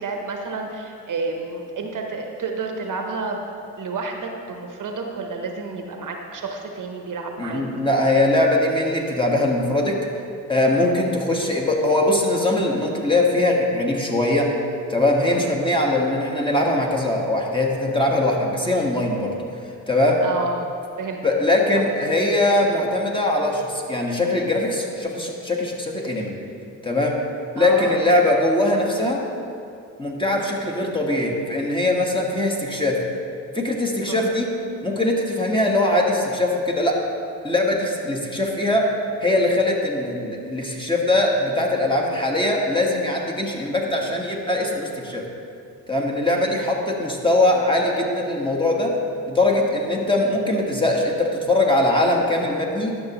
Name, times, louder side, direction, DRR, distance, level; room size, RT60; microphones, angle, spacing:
voice 1, 0.0-3.4 3.8-7.6 10.8-11.0 15.3-15.5 20.2-20.7 21.0-21.2 27.6-28.1 34.1-34.2 46.5-46.6, right 3 dB, 60° right, 3 dB, 0.9 m, -30 dB
voice 2, 7.4-10.0 10.5-14.5 14.9-19.3 19.9-20.2 21.2-26.3 26.8-27.2 27.5-29.2 30.0-33.0 33.5-34.5 34.8-37.0 37.4-38.8 39.2-45.2 45.9-48.9 49.3-52.9, left 1 dB, 15° left, -1 dB, 1.4 m, -21 dB
11.5 x 6.1 x 3.0 m, 2.5 s
supercardioid pair, 55°, 36 cm